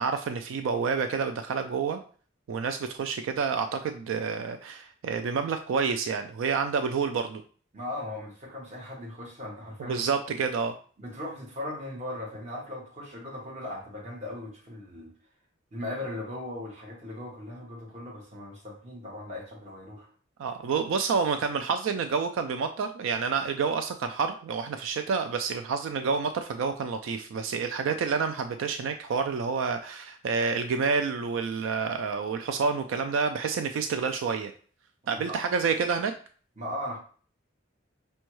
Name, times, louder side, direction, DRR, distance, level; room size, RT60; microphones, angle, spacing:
voice 1, 0.0-2.0 2.5-7.4 9.9-10.7 20.4-34.5 35.1-36.1, right 5 dB, 80° right, 7 dB, 0.3 m, -28 dB
voice 2, 7.7-10.1 11.0-15.1 15.7-20.1 35.0-35.4 36.6-37.0, left 1 dB, 35° right, -3 dB, 1.1 m, -38 dB
5.2 x 2.2 x 3.0 m, 0.43 s
head